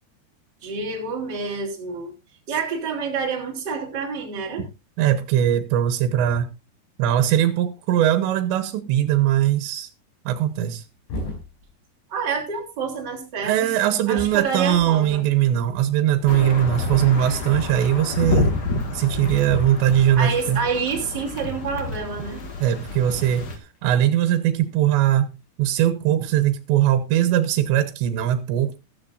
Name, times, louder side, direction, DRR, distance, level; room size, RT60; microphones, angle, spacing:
voice 1, 0.6-2.1 2.5-4.6 12.1-13.7 14.1-15.2 20.2-22.4, right 5 dB, 25° right, 3.4 m, -28 dB
voice 2, 5.0-6.5 7.0-9.9 10.3-10.8 13.4-18.5 18.9-20.6 22.6-23.5 23.8-28.7, right 11 dB, 85° right, 3.2 m, -20 dB
sound 1, 9.9-10.0 10.4-12.2 12.5-18.8 19.1-19.4 19.8-19.9 20.1-26.4 27.3-27.8, left 1 dB, 90° left, 7.4 m, -44 dB
sound 2, 16.3-23.6, left 3 dB, 65° left, 1.0 m, -28 dB
14.5 x 13.5 x 2.6 m
omnidirectional pair, 5.0 m